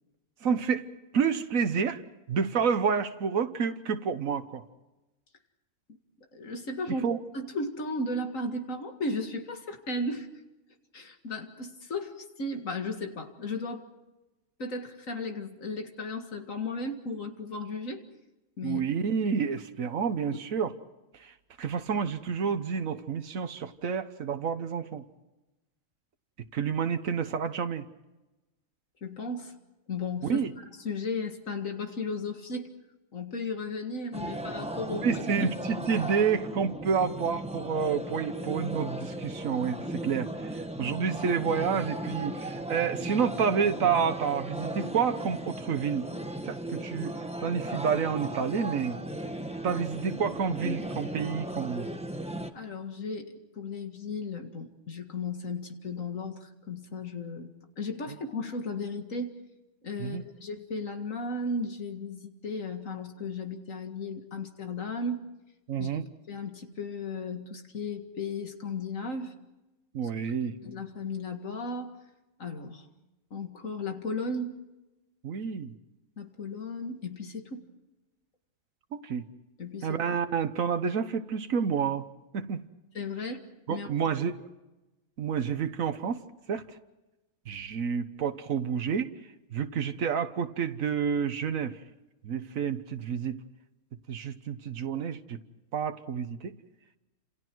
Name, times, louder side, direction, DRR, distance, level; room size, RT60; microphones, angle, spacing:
voice 1, 0.4-0.9 1.1-2.0 2.3-4.6 7.0-7.2 18.6-20.7 21.1-25.0 26.5-27.9 30.3-30.5 34.9-46.1 46.4-49.0 49.6-51.9 60.0-60.2 65.7-66.0 69.9-70.6 75.2-75.7 78.9-79.2 79.8-82.1 82.3-82.6 83.7-84.4 85.2-86.2 86.5-86.6 87.5-89.1 89.5-91.8 92.2-93.4 94.1-95.4 95.7-96.5, right 6 dB, 85° right, 9 dB, 1.5 m, -29 dB
voice 2, 6.3-10.3 10.9-13.9 14.6-18.0 18.6-18.8 20.3-20.4 29.0-29.5 29.9-32.7 33.1-35.1 49.7-49.8 52.5-57.5 57.8-59.4 59.8-65.2 65.8-65.9 66.3-69.3 70.6-72.0 72.4-72.9 73.3-74.6 76.2-77.7 79.6-80.0 82.9-83.4 83.7-83.9, left 2 dB, 80° left, 5 dB, 2.3 m, -35 dB
sound 1, 34.1-52.5, right 1 dB, 5° right, 1.2 m, -37 dB
30.0 x 27.5 x 4.6 m, 1.0 s
omnidirectional pair, 1.4 m